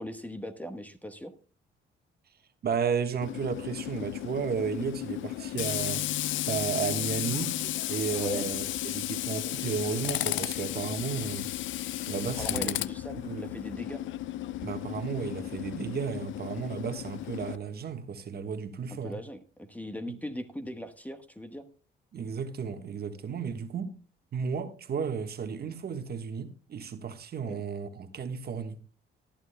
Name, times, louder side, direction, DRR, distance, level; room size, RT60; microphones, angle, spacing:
voice 1, 0.0-1.3 8.2-8.5 12.4-14.0 18.9-21.6 27.4-27.6, equal, 5° left, 1.2 m, -39 dB
voice 2, 2.6-6.0 6.4-7.5 7.9-11.5 12.1-12.8 13.2-13.5 14.6-19.2 20.1-20.2 22.1-23.9 24.3-28.8, right 6 dB, 55° right, 1.4 m, -33 dB
Tools, 3.2-17.6, left 14 dB, 75° left, 0.5 m, -34 dB
19.0 x 12.0 x 2.2 m
cardioid pair, 90°, 20 cm